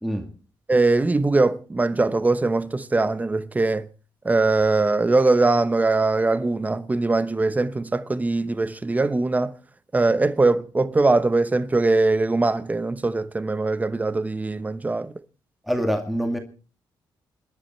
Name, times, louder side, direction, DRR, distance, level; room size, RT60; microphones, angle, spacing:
voice 1, 0.7-3.9 4.2-9.5 9.9-15.1, right 3 dB, 20° right, 0.9 m, -21 dB
voice 2, 15.6-16.4, equal, ahead, 2.2 m, -25 dB
28.5 x 10.5 x 4.5 m
cardioid pair, 95°, 8 cm